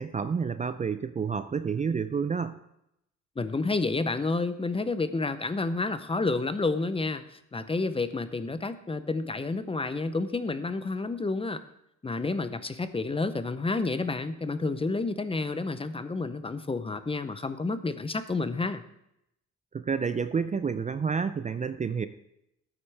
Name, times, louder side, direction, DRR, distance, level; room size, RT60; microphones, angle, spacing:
voice 1, 0.0-2.6 19.7-22.1, right 6 dB, 25° right, 11 dB, 0.4 m, -29 dB
voice 2, 3.4-11.6 12.0-18.8, left 3 dB, 20° left, 12 dB, 0.7 m, -30 dB
13.0 x 8.8 x 3.4 m, 0.80 s
cardioid pair, 90°, 30 cm